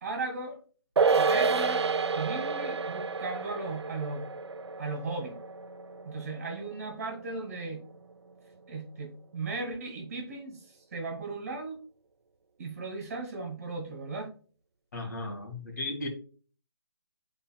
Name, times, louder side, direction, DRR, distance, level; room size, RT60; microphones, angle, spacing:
voice 1, 0.0-0.6 1.1-1.9 2.1-4.3 4.8-5.4 6.1-7.8 8.7-10.6 10.9-11.8 12.6-14.3, right 3 dB, 35° right, 3 dB, 2.1 m, -36 dB
sound 1, 1.0-7.6 7.9-8.0, right 5 dB, 90° right, 0.5 m, -30 dB
voice 2, 14.9-16.1, left 2 dB, 45° left, 1 dB, 2.1 m, -35 dB
11.0 x 4.2 x 2.2 m, 0.39 s
hypercardioid pair, 170°, 14 cm